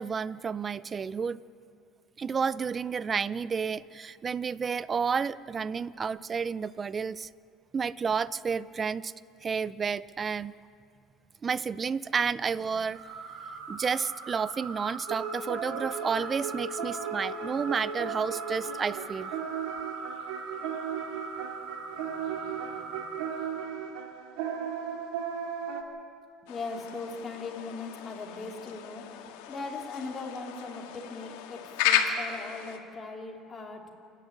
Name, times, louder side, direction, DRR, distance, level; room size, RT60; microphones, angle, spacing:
voice 1, 0.0-1.4 2.2-7.3 7.7-9.1 9.4-10.5 11.4-13.0 13.7-19.3, right 6 dB, 25° right, 18 dB, 0.5 m, -31 dB
sound 1, 12.9-23.7, right 4 dB, 65° right, 3.8 m, -41 dB
sound 2, 15.1-25.8, right 6 dB, 85° right, 2.4 m, -36 dB
voice 2, 26.4-29.1 29.5-33.9, left 3 dB, 20° left, 0 dB, 3.2 m, -39 dB
sound 3, 26.5-32.8, left 9 dB, 85° left, 2.1 m, -33 dB
28.5 x 11.0 x 8.7 m, 2.6 s
cardioid pair, 130°, 0 cm